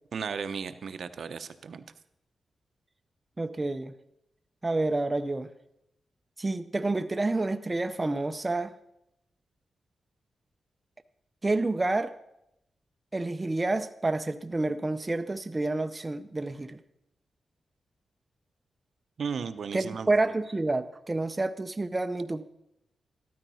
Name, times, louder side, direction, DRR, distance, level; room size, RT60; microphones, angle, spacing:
voice 1, 0.1-1.8 19.2-20.1, right 6 dB, 60° right, 0.8 m, -35 dB
voice 2, 3.4-3.9 4.6-5.5 6.4-8.7 11.4-12.2 13.1-16.8 19.7-22.5, right 2 dB, 20° right, 0.6 m, -29 dB
14.0 x 12.0 x 5.6 m
wide cardioid pair, 155°, 0 cm